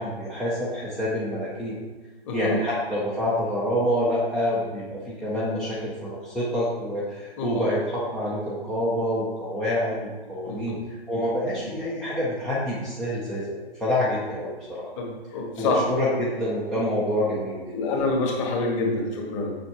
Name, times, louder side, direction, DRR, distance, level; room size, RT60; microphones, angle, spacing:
voice 1, 0.0-1.8 2.3-14.9 15.6-17.7, equal, ahead, -9 dB, 0.4 m, -27 dB
voice 2, 2.2-2.6 7.4-7.6 10.4-10.8 15.0-15.8 17.3-17.4 17.7-19.6, left 3 dB, 30° left, 0 dB, 1.8 m, -27 dB
7.1 x 6.5 x 4.6 m, 1.2 s
hypercardioid pair, 145°, 31 cm